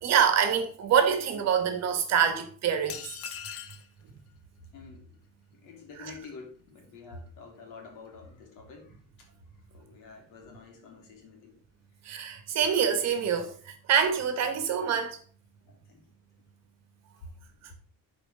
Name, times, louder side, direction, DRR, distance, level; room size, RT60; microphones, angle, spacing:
voice 1, 0.0-3.0 6.0-6.1 12.0-15.2, right 7 dB, 50° right, 1.4 m, -25 dB
sound 1, 2.9-3.9, left 8 dB, 45° left, 0.8 m, -39 dB
voice 2, 4.7-5.1 5.5-9.0 9.7-11.5 15.6-16.0, left 4 dB, 75° left, 2.7 m, -48 dB
11.5 x 4.6 x 3.8 m
cardioid pair, 170°, 33 cm